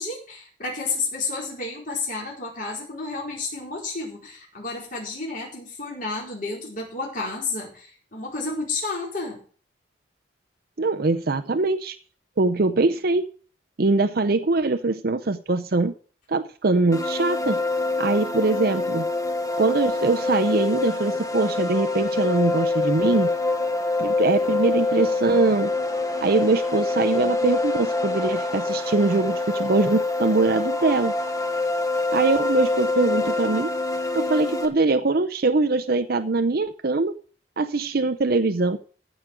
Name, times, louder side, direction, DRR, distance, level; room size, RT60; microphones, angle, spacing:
voice 1, 0.0-9.4, left 3 dB, 45° left, -3 dB, 4.5 m, -31 dB
voice 2, 10.8-12.0 12.4-13.3 13.8-15.9 16.3-17.6 18.0-19.0 19.6-23.3 24.0-25.7 26.2-31.1 32.1-33.7 34.1-37.1 37.6-38.8, right 3 dB, 55° right, 7 dB, 0.7 m, -22 dB
sound 1, 16.9-34.7, left 2 dB, 20° left, 1.3 m, -25 dB
15.0 x 5.2 x 7.6 m, 0.41 s
head